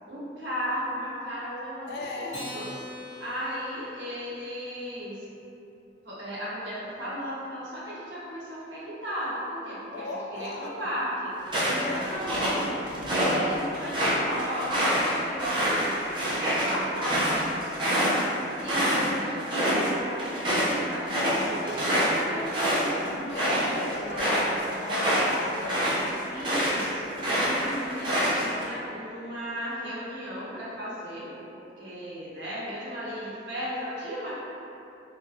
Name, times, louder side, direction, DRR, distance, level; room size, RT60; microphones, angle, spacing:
voice 1, 0.1-2.7 3.2-5.2 6.0-12.5 13.2-18.2 18.6-24.6 26.2-34.3, equal, 80° right, -8 dB, 0.8 m, -35 dB
voice 2, 1.9-2.5 9.9-10.9 11.8-13.0 23.1-25.8, left 3 dB, 65° left, 0 dB, 0.3 m, -37 dB
Acoustic guitar, 2.3-5.0, left 2 dB, 40° left, 1.1 m, -43 dB
sound 1, 11.5-13.4 13.7-19.1 19.4-19.9 20.2-26.8 27.2-28.6, equal, 25° right, 0.5 m, -26 dB
2.7 x 2.1 x 2.6 m, 2.7 s
head